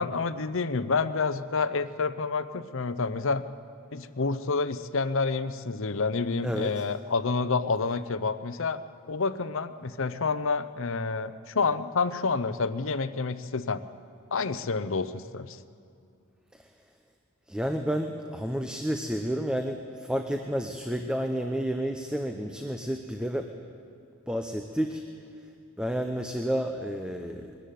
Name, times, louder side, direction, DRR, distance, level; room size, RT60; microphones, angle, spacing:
voice 1, 0.0-3.4 3.9-8.8 9.1-13.8 14.3-15.6, left 4 dB, 65° left, 12 dB, 0.8 m, -28 dB
voice 2, 6.4-6.8 16.5-16.6 17.5-23.5 24.3-25.0 25.8-27.7, equal, 5° right, 5 dB, 0.8 m, -30 dB
22.0 x 13.5 x 9.3 m, 2.4 s
head